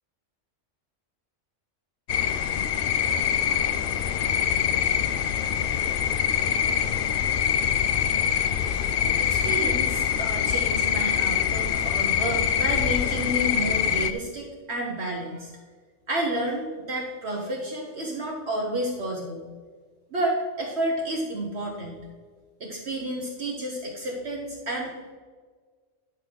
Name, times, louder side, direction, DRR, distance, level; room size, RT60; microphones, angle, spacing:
sound 1, 2.1-14.1, left 9 dB, 60° left, 0.6 m, -24 dB
sound 2, 2.8-8.0, equal, 15° left, 2.2 m, -45 dB
voice 1, 9.2-15.5 16.1-19.4 20.1-22.0 22.6-24.9, right 1 dB, 60° right, -2 dB, 1.4 m, -30 dB
11.5 x 5.6 x 3.9 m, 1.5 s
omnidirectional pair, 1.3 m